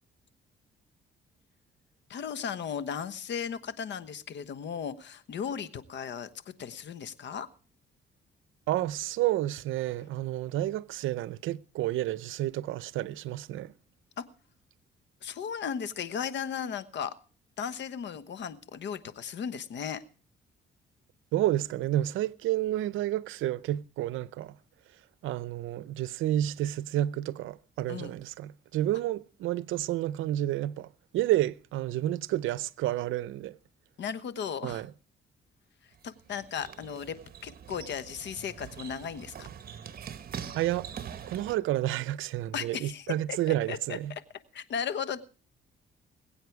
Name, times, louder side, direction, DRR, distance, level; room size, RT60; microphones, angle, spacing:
voice 1, 2.1-6.3 6.6-7.5 14.2-14.3 15.2-17.1 17.6-20.0 27.9-28.1 34.0-34.8 36.0-37.2 37.4-39.5 42.5-44.0 44.5-45.2, left 7 dB, 65° left, 1.2 m, -36 dB
voice 2, 8.7-13.7 21.3-24.5 25.2-30.9 31.1-33.6 34.6-34.9 40.6-40.9 41.3-44.1, right 14 dB, 85° right, 0.6 m, -30 dB
sound 1, 35.9-41.5, right 8 dB, 50° right, 1.2 m, -43 dB
21.5 x 8.6 x 4.7 m
cardioid pair, 90°, 20 cm